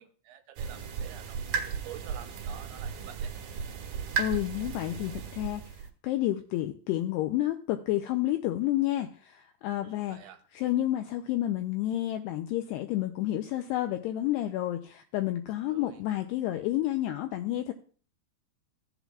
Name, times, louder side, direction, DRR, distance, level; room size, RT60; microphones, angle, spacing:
voice 1, 0.0-3.3 9.8-10.4 15.7-16.0, right 11 dB, 80° right, 8 dB, 3.1 m, -49 dB
sound 1, 0.6-5.9, right 6 dB, 65° right, 2.8 m, -35 dB
voice 2, 4.2-10.2 10.5-17.7, left 14 dB, 85° left, 6 dB, 2.4 m, -30 dB
16.0 x 7.9 x 2.3 m, 0.42 s
omnidirectional pair, 5.3 m